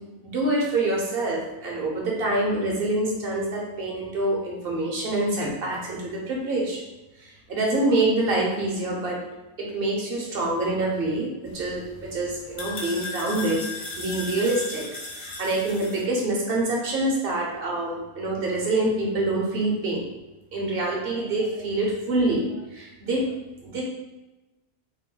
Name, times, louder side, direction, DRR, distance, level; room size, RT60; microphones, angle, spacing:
voice 1, 0.2-6.8 7.2-9.2 9.6-14.8 15.2-20.1 20.5-23.2 23.6-23.8, right 2 dB, 60° right, -2 dB, 1.0 m, -26 dB
sound 1, 11.5-16.0, left 3 dB, 50° left, 0.9 m, -37 dB
3.6 x 2.1 x 3.7 m, 1.0 s
omnidirectional pair, 1.2 m